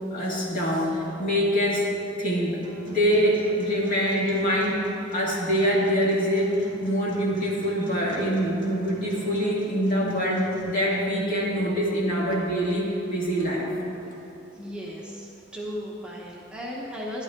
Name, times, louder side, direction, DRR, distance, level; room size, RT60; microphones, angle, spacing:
voice 1, 0.1-1.9 2.2-2.6 2.9-4.8 5.1-6.6 6.8-13.7, equal, 45° left, -4 dB, 2.2 m, -24 dB
Acoustic guitar, 2.6-10.6, left 1 dB, 25° left, 2.0 m, -43 dB
voice 2, 14.5-17.2, equal, 5° right, -4 dB, 1.0 m, -36 dB
12.0 x 11.0 x 3.7 m, 2.9 s
head